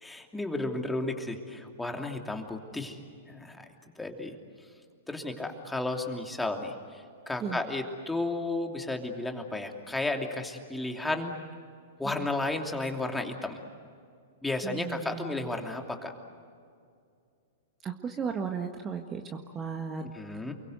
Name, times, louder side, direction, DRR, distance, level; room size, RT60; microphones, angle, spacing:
voice 1, 0.0-3.0 3.3-3.6 4.0-4.3 5.1-11.4 12.0-13.6 14.4-16.1 20.1-20.5, left 2 dB, 5° left, 3 dB, 2.9 m, -33 dB
voice 2, 14.6-15.5 17.8-20.0, right 6 dB, 25° right, 5 dB, 1.7 m, -35 dB
29.5 x 23.0 x 8.1 m, 2.3 s
figure-of-eight pair, 105°, 0 cm